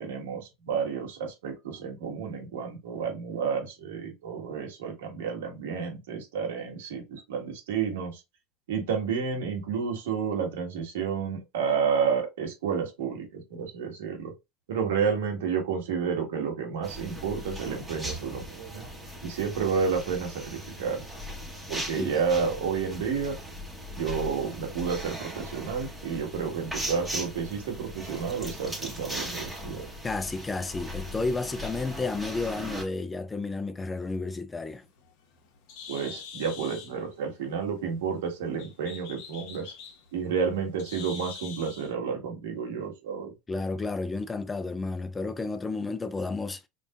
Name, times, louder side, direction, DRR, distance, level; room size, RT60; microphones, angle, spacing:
voice 1, 0.0-8.2 8.7-14.3 14.7-18.9 19.2-21.0 21.7-23.4 23.9-29.9 35.9-39.7 40.1-43.3, right 6 dB, 90° right, 1.6 m, -30 dB
sound 1, 16.8-32.8, equal, 5° right, 1.3 m, -38 dB
voice 2, 30.0-34.8 43.5-46.7, left 3 dB, 15° left, 0.4 m, -32 dB
Bird, 34.6-41.9, left 6 dB, 65° left, 1.0 m, -45 dB
5.2 x 2.7 x 2.4 m
supercardioid pair, 115°, 0 cm